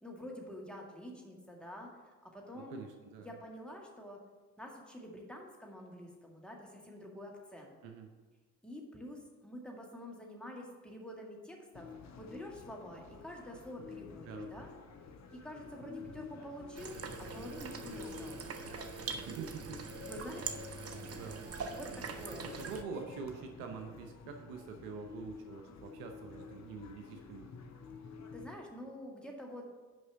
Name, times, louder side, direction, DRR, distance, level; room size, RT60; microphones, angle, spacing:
voice 1, 0.0-2.8 3.2-4.2 4.6-7.7 8.6-11.9 12.2-14.7 15.3-18.5 20.0-20.6 21.1-21.4 21.7-22.4 28.3-29.7, equal, ahead, -1 dB, 1.9 m, -47 dB
voice 2, 2.5-3.3 7.8-8.1 14.2-14.6 16.0-16.2 19.3-19.9 21.1-21.5 22.3-27.5, right 5 dB, 70° right, 5 dB, 0.8 m, -46 dB
sound 1, 11.7-28.5, left 5 dB, 40° left, 0.9 m, -50 dB
sound 2, 16.8-22.8, right 5 dB, 35° right, 0.8 m, -43 dB
6.3 x 5.2 x 6.3 m, 1.3 s
figure-of-eight pair, 40°, 42 cm